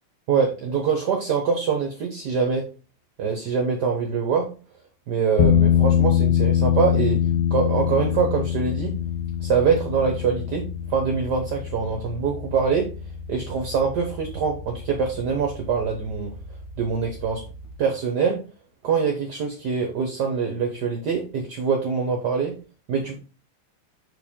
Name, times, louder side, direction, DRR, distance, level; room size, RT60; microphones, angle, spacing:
voice 1, 0.3-2.6 3.2-4.5 5.1-7.2 7.5-8.9 9.4-12.9 13.3-16.3 16.8-17.4 17.8-18.4 18.8-22.5 22.9-23.2, right 6 dB, 55° right, 3 dB, 1.4 m, -24 dB
sound 1, 5.4-17.7, left 9 dB, 60° left, 1.5 m, -25 dB
6.3 x 4.6 x 3.6 m, 0.34 s
omnidirectional pair, 2.4 m